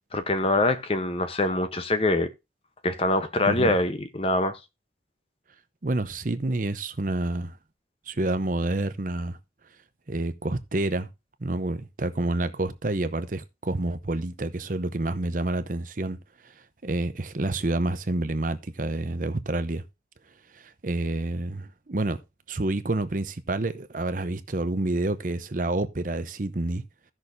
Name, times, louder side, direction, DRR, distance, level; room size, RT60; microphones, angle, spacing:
voice 1, 0.1-2.3 2.8-4.6, left 2 dB, 30° left, 0.8 m, -24 dB
voice 2, 3.4-3.8 5.8-7.6 8.1-9.4 10.1-11.1 11.4-16.2 16.4-16.5 16.8-19.8 20.5-22.2 22.5-26.8, right 2 dB, 45° right, 0.7 m, -28 dB
16.0 x 6.2 x 2.6 m
head